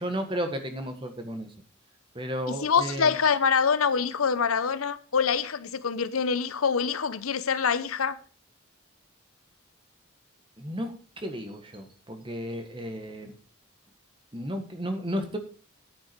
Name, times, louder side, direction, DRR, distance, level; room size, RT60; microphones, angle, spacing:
voice 1, 0.0-1.5 2.1-3.1 10.6-13.3 14.3-15.4, equal, 25° right, 1.5 m, -33 dB
voice 2, 2.5-8.2, left 6 dB, 90° left, 0.8 m, -25 dB
9.7 x 9.5 x 4.6 m
head